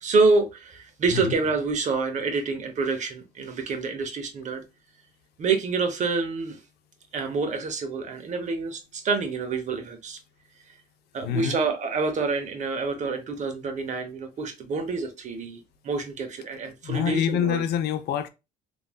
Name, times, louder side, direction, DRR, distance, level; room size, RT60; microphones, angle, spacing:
voice 1, 0.0-4.6 5.4-6.6 7.1-10.2 11.1-17.6, right 4 dB, 45° right, 0.7 m, -27 dB
voice 2, 11.2-11.6 16.8-18.3, left 9 dB, 75° left, 0.4 m, -26 dB
3.0 x 2.5 x 2.2 m
cardioid pair, 110°, 17 cm